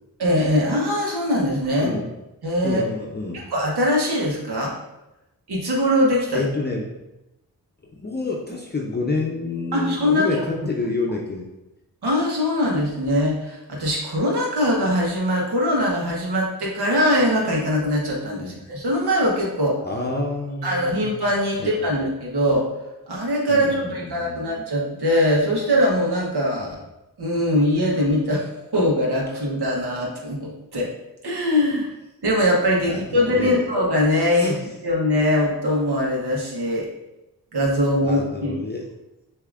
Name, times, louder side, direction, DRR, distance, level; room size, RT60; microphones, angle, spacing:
voice 1, 0.2-1.9 2.4-2.8 3.3-4.7 5.5-6.5 9.7-10.4 12.0-19.8 20.6-22.7 23.1-26.8 27.2-28.5 28.7-30.9 31.2-31.9 32.2-36.9 37.5-38.5, left 1 dB, 85° right, -2 dB, 1.2 m, -22 dB
voice 2, 2.6-3.4 6.3-6.9 7.9-11.4 18.4-18.6 19.8-21.1 21.6-22.0 23.5-24.6 26.6-26.7 32.9-33.6 34.4-34.6 38.0-38.9, left 3 dB, 25° left, -1 dB, 0.6 m, -28 dB
6.7 x 2.8 x 2.5 m, 0.95 s
cardioid pair, 50°, 38 cm